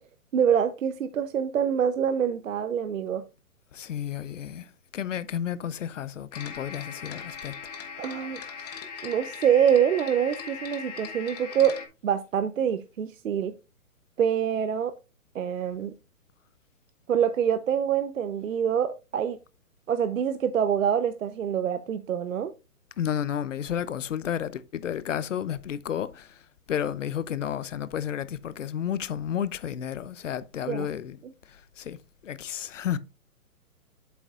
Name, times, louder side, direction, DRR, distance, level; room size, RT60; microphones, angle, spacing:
voice 1, 0.3-3.2 8.0-8.4 9.0-11.8 12.0-13.5 14.2-14.9 15.3-15.9 17.1-19.4 19.9-22.5 30.7-30.9, right 8 dB, 60° right, 0.8 m, -25 dB
voice 2, 3.7-7.6 23.0-31.2 31.5-33.0, left 9 dB, 60° left, 0.7 m, -32 dB
sound 1, 6.3-11.9, left 6 dB, 30° left, 1.1 m, -39 dB
8.1 x 7.8 x 2.5 m
hypercardioid pair, 165°, 44 cm